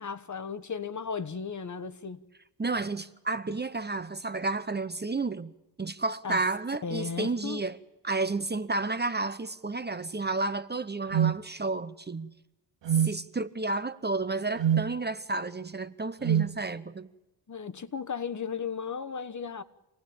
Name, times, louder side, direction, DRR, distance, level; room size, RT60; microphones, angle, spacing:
voice 1, 0.0-2.2 6.2-6.4 6.8-7.6 17.5-19.6, left 6 dB, 45° left, 1.2 m, -35 dB
voice 2, 2.6-5.5 5.8-7.8 8.0-12.3 12.9-17.1, right 3 dB, 25° right, 0.9 m, -31 dB
sound 1, 11.1-11.4 12.8-13.2 14.6-14.9 16.2-16.5, right 9 dB, 80° right, 1.0 m, -24 dB
27.5 x 19.0 x 8.8 m
wide cardioid pair, 170°, 42 cm